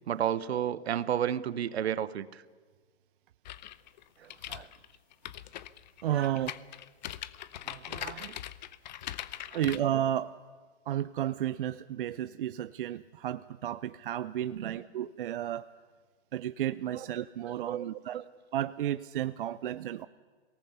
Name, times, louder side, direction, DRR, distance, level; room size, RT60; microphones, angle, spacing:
voice 1, 0.1-2.4 4.2-4.7 6.1-6.5 7.7-8.4 9.5-9.6 14.5-14.8 16.9-17.0 17.6-18.2, right 10 dB, 70° right, 17 dB, 1.0 m, -33 dB
sound 1, 3.5-9.8, left 12 dB, 40° left, 0.7 m, -41 dB
voice 2, 6.0-6.6 9.5-10.4 10.9-15.7 16.3-18.2 18.5-20.1, right 11 dB, 50° right, 13 dB, 0.6 m, -32 dB
23.5 x 18.0 x 6.9 m, 1.5 s
hypercardioid pair, 150°, 34 cm